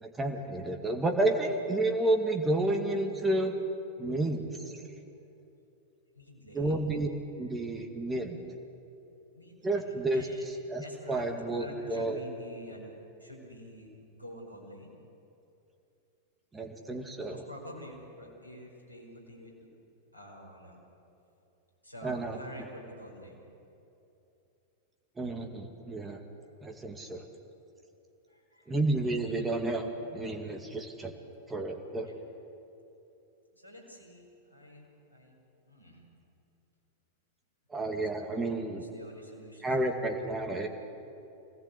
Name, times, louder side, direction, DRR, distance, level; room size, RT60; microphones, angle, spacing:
voice 1, 0.0-3.5 4.0-4.4 6.5-7.1 7.4-8.4 9.6-10.8 11.1-12.2 16.5-17.4 22.0-22.4 25.2-26.2 26.6-27.2 28.7-31.1 31.5-32.1 37.7-38.8 39.6-40.7, right 2 dB, 15° right, 4 dB, 2.2 m, -31 dB
voice 2, 6.1-6.9 9.3-10.5 10.8-12.9 13.2-15.0 17.3-19.7 20.1-20.8 21.8-23.4 28.3-28.8 32.0-32.2 33.5-35.3 35.6-36.0 38.7-39.7 40.1-40.2, equal, 85° right, -1 dB, 5.7 m, -48 dB
25.5 x 19.0 x 8.2 m, 2.8 s
figure-of-eight pair, 90°, 0 cm